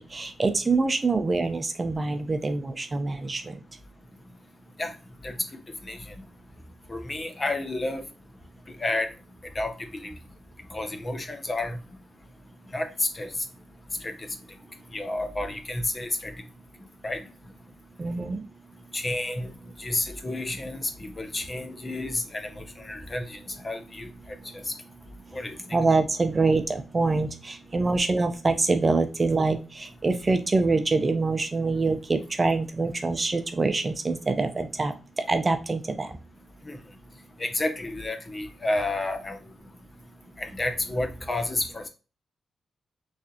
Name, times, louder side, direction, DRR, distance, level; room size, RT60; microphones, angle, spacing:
voice 1, 0.0-3.6 18.0-18.4 25.7-34.9 35.3-36.1, right 3 dB, 35° right, 8 dB, 0.6 m, -25 dB
voice 2, 6.9-8.0 8.8-9.1 9.5-10.1 10.7-11.8 12.7-13.3 14.0-14.1 14.9-16.3 17.0-17.2 18.9-19.5 19.8-24.1 24.7-24.8 25.3-25.6 36.6-36.8 37.4-39.4 40.4-41.9, left 2 dB, 35° left, 7 dB, 0.7 m, -30 dB
3.5 x 3.2 x 2.8 m, 0.32 s
cardioid pair, 65°, 0 cm